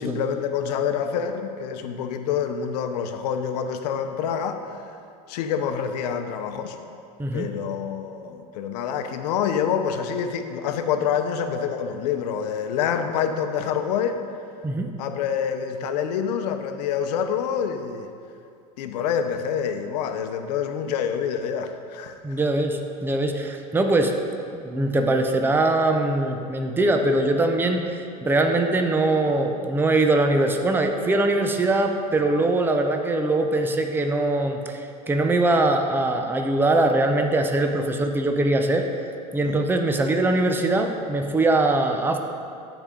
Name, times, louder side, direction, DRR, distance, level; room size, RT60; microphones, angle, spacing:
voice 1, 0.0-4.6 5.3-6.8 7.3-14.2 15.0-18.1 18.8-22.4 39.4-39.6, left 7 dB, 75° left, 7 dB, 0.8 m, -27 dB
voice 2, 22.2-24.1 24.5-38.9 39.3-42.2, right 2 dB, 10° right, 4 dB, 0.6 m, -22 dB
14.5 x 5.0 x 3.8 m, 2.5 s
supercardioid pair, 120°, 21 cm